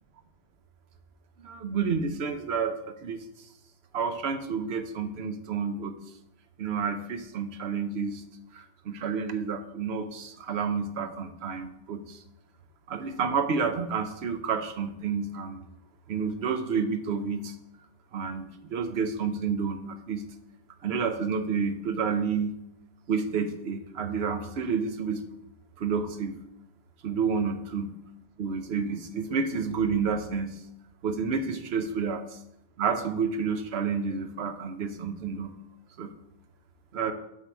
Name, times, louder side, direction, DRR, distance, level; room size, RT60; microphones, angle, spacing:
voice 1, 1.4-3.2 3.9-5.9 6.6-8.2 8.5-12.2 12.9-15.6 16.1-17.5 18.1-20.2 20.8-22.5 23.1-25.2 25.8-26.4 27.0-27.9 28.4-30.6 31.0-32.4 32.8-35.6 36.0-36.1 36.9-37.1, right 5 dB, 85° right, 8 dB, 1.0 m, -30 dB
7.4 x 5.6 x 4.6 m, 0.82 s
omnidirectional pair, 1.1 m